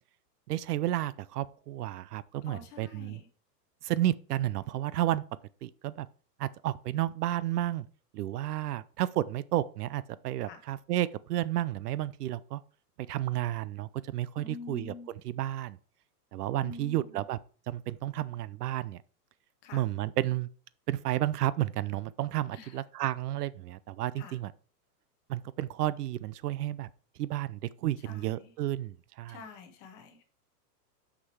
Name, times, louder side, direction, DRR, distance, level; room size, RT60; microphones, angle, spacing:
voice 1, 0.5-3.2 3.8-5.2 5.6-6.1 6.4-7.8 8.1-12.6 13.1-14.9 15.2-15.8 16.3-17.4 17.7-19.0 19.7-20.5 20.9-24.5 25.3-26.9 27.2-29.4, right 14 dB, 70° right, 0.6 m, -32 dB
voice 2, 2.5-3.3 10.5-10.6 14.4-15.1 16.6-17.2 19.6-19.8 22.5-22.8 24.2-24.4 28.0-28.5 29.3-30.2, left 4 dB, 20° left, 0.9 m, -46 dB
6.3 x 6.1 x 4.5 m
supercardioid pair, 170°, 49 cm